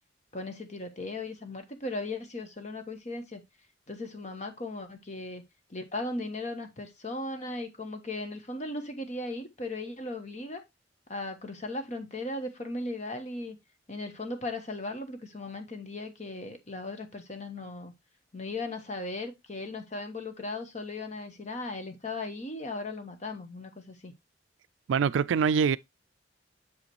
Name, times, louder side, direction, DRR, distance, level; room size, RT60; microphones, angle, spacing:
voice 1, 0.3-3.4 3.9-5.4 5.7-10.6 11.1-13.6 13.9-17.9 18.3-24.1, left 2 dB, 40° left, 1.2 m, -37 dB
voice 2, 24.9-25.8, right 6 dB, 80° right, 0.3 m, -24 dB
7.3 x 4.9 x 3.1 m
head